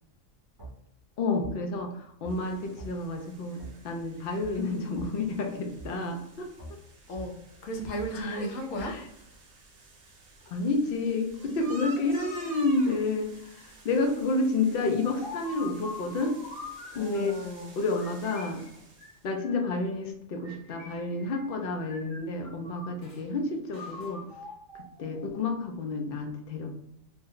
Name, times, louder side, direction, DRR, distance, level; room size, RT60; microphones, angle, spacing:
sound 1, 0.6-0.7 1.4-1.5 2.2-2.4 2.8-2.9 3.6-3.7 4.4-4.5 4.9-5.1 5.8-5.9 6.6-6.7 7.1-7.3 7.9-8.1 8.8-8.9, right 2 dB, 15° right, 0.8 m, -42 dB
voice 1, 1.2-6.5 8.1-8.5 8.8-9.0 10.5-16.4 16.9-17.4 17.8-18.6 19.2-24.2 25.0-26.7, left 3 dB, 60° left, 3 dB, 0.6 m, -30 dB
sound 2, 2.3-19.2, right 2 dB, 55° right, 0.8 m, -50 dB
voice 2, 7.6-8.9 16.9-17.7, right 1 dB, 80° left, 2 dB, 1.0 m, -34 dB
sound 3, 14.7-17.5 17.9-19.7 20.4-21.5 21.8-23.2 23.7-25.5, left 3 dB, 40° left, 1.0 m, -44 dB
2.7 x 2.1 x 3.7 m, 0.78 s
omnidirectional pair, 1.4 m